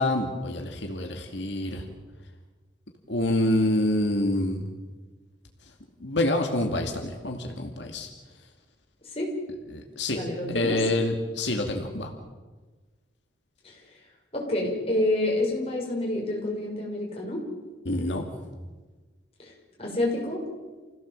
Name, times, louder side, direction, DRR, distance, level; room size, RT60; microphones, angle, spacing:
voice 1, 0.0-1.8 3.1-4.6 6.0-8.1 9.7-10.2 10.5-12.1 17.9-18.2, left 1 dB, 85° left, 3 dB, 2.4 m, -27 dB
voice 2, 10.1-10.8 13.6-13.7 14.3-17.4 19.4-19.5 19.8-20.4, left 1 dB, 35° left, -2 dB, 6.5 m, -28 dB
28.5 x 17.0 x 7.7 m, 1.3 s
head